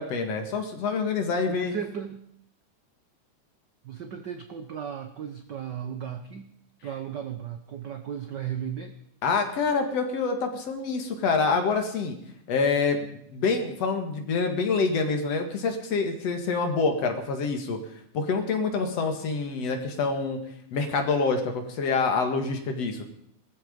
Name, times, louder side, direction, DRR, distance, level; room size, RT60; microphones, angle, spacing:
voice 1, 0.0-1.7 9.2-12.2 12.5-17.8 18.1-20.4 20.7-23.0, left 4 dB, 60° left, 5 dB, 2.9 m, -26 dB
voice 2, 1.5-2.3 3.8-6.5 6.8-8.9, right 8 dB, 80° right, 8 dB, 0.9 m, -35 dB
19.5 x 14.0 x 5.3 m, 0.70 s
omnidirectional pair, 3.4 m